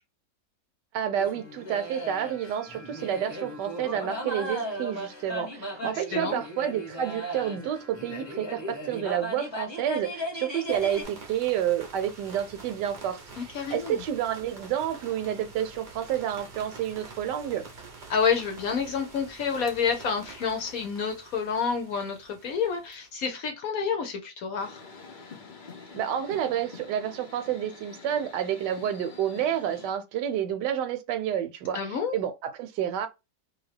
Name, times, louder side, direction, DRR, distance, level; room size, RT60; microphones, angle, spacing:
voice 1, 0.9-17.6 25.9-33.1, right 10 dB, 75° right, 1.2 m, -29 dB
sound 1, 1.2-11.0, equal, 20° left, 0.7 m, -37 dB
voice 2, 5.9-6.4 13.4-14.0 18.1-24.8 31.7-32.2, left 6 dB, 65° left, 0.9 m, -29 dB
sound 2, 10.7-23.3, right 3 dB, 55° right, 0.5 m, -47 dB
sound 3, 24.6-29.9, left 4 dB, 85° left, 0.4 m, -47 dB
2.8 x 2.6 x 3.2 m
omnidirectional pair, 1.9 m